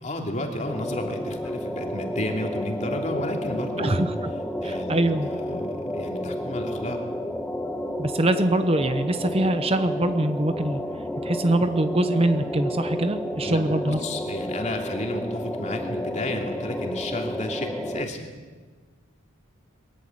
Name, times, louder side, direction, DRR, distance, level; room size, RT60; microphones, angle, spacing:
voice 1, 0.0-4.0 4.6-7.0 13.4-13.6 13.8-18.3, left 1 dB, 35° left, 2 dB, 2.9 m, -32 dB
sound 1, 0.7-18.0, equal, 5° left, 1.1 m, -31 dB
voice 2, 3.8-4.3 4.6-5.3 8.0-10.8 11.2-14.0, right 1 dB, 30° right, 9 dB, 0.8 m, -23 dB
22.5 x 15.0 x 9.6 m, 1.5 s
head